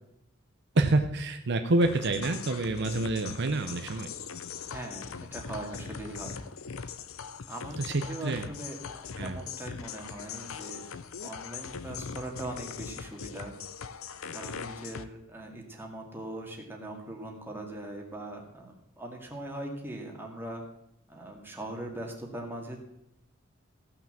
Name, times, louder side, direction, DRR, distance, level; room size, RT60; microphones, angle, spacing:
voice 1, 0.7-4.1 7.8-8.5 9.2-9.4, right 2 dB, 60° right, 7 dB, 0.7 m, -27 dB
sound 1, 1.8-15.0, left 6 dB, 90° left, 0.7 m, -41 dB
voice 2, 4.7-6.4 7.5-10.9 11.2-13.5 14.3-20.6 21.1-22.8, right 1 dB, 10° right, 0 dB, 2.1 m, -40 dB
15.0 x 5.9 x 7.4 m, 0.79 s
head